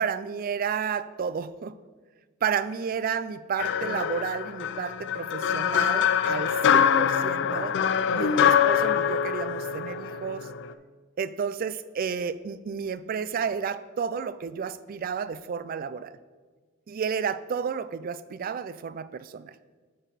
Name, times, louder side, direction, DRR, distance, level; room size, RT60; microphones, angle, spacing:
voice 1, 0.0-1.8 2.4-7.8 8.1-10.5 11.2-16.2 16.9-19.6, right 6 dB, 45° right, 15 dB, 0.3 m, -31 dB
sound 1, 3.6-10.7, left 8 dB, 60° left, 0.4 m, -24 dB
7.5 x 6.3 x 4.1 m, 1.4 s
head